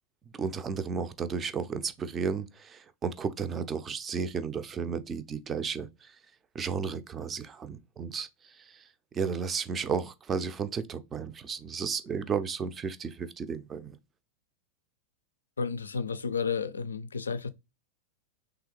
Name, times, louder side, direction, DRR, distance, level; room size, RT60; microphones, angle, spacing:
voice 1, 0.4-6.1 6.5-8.9 9.1-14.0, right 6 dB, 20° right, 0.4 m, -33 dB
voice 2, 15.6-17.5, left 5 dB, 75° left, 0.3 m, -32 dB
3.4 x 2.4 x 3.1 m
figure-of-eight pair, 90°, 0 cm